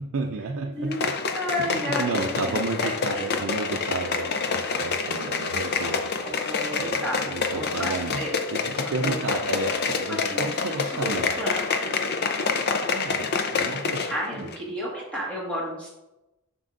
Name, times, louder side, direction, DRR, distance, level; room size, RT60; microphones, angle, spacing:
voice 1, 0.0-1.0 1.6-6.0 6.7-8.2 8.5-11.3 12.9-14.1, right 3 dB, 75° right, 2 dB, 0.5 m, -32 dB
voice 2, 0.6-3.3 4.1-4.4 6.2-7.2 7.5-8.4 8.8-9.1 10.1-12.0 14.1-15.9, equal, 5° left, -5 dB, 1.7 m, -33 dB
sound 1, 0.9-14.2 14.5-14.6, left 4 dB, 50° left, 0.6 m, -27 dB
7.5 x 6.0 x 2.6 m, 0.98 s
head